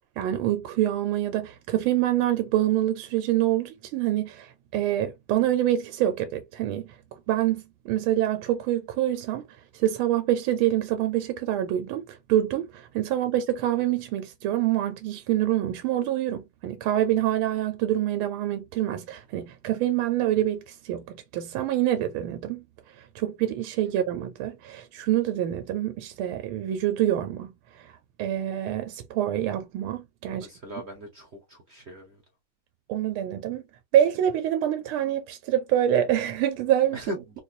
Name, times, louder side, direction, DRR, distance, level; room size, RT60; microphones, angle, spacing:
voice 1, 0.2-6.9 7.3-9.5 9.7-22.6 23.1-27.5 28.2-30.5 32.9-33.6 33.9-37.0, right 12 dB, 80° right, 1.4 m, -26 dB
voice 2, 30.3-32.2 36.9-37.4, right 1 dB, 55° right, 0.7 m, -38 dB
4.1 x 2.3 x 2.6 m
omnidirectional pair, 2.3 m